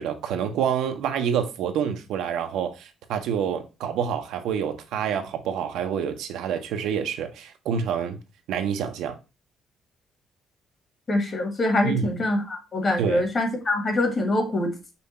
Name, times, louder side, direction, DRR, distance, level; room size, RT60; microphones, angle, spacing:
voice 1, 0.0-8.2 8.5-9.2 11.8-12.2 13.0-13.2, right 8 dB, 90° right, 0.7 m, -27 dB
voice 2, 11.1-14.7, left 1 dB, 35° left, 1.3 m, -24 dB
5.5 x 2.2 x 4.0 m
cardioid pair, 120°, 0 cm